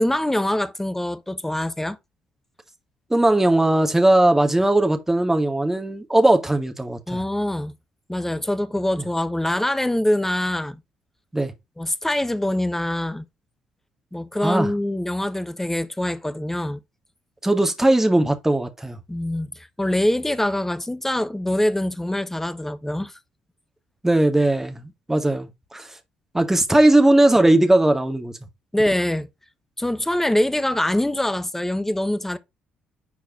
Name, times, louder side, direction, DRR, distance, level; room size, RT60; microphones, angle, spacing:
voice 1, 0.0-2.0 7.1-7.7 8.1-10.8 11.8-13.2 14.1-16.8 19.1-23.1 28.7-29.3 29.8-32.4, left 1 dB, 10° left, 1.2 m, -24 dB
voice 2, 3.1-7.2 9.0-9.1 11.3-11.5 14.4-14.7 17.4-19.0 24.0-25.9 26.3-28.3, right 1 dB, 10° right, 2.0 m, -18 dB
10.5 x 4.6 x 2.6 m
figure-of-eight pair, 45°, 4 cm